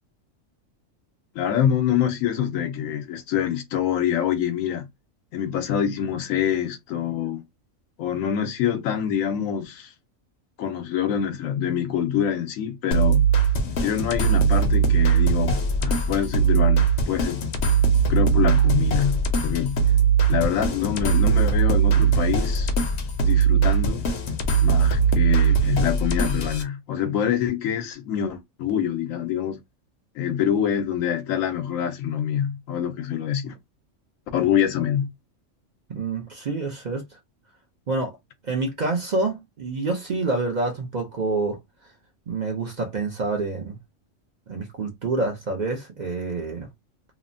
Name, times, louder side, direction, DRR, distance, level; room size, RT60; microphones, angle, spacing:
voice 1, 1.3-4.9 5.3-7.4 8.0-9.9 10.6-13.3 13.8-17.4 18.1-19.8 20.3-22.7 23.2-24.1 24.6-29.6 30.1-33.6 34.3-35.1, left 9 dB, 90° left, 1.0 m, -25 dB
sound 1, 12.9-26.6, right 6 dB, 65° left, 0.9 m, -20 dB
voice 2, 35.9-37.2 37.9-38.2 38.4-41.6 42.3-43.8 44.5-46.7, right 3 dB, 50° right, 0.6 m, -27 dB
2.9 x 2.1 x 2.5 m
omnidirectional pair, 1.3 m